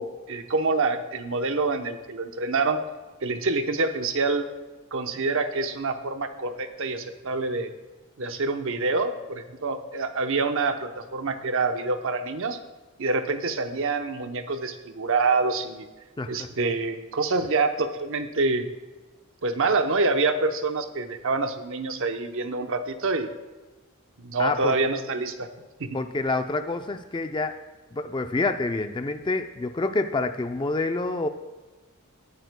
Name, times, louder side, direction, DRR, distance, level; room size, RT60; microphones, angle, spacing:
voice 1, 0.0-2.8 3.2-4.5 4.9-7.7 8.2-12.6 13.0-15.9 16.3-18.7 19.4-23.3 24.2-25.5 25.8-26.0, right 3 dB, 65° right, 7 dB, 0.9 m, -26 dB
voice 2, 16.2-16.5 24.4-24.7 25.9-27.5 27.9-31.3, left 3 dB, 20° left, 7 dB, 0.4 m, -27 dB
19.0 x 9.2 x 2.2 m, 1.2 s
head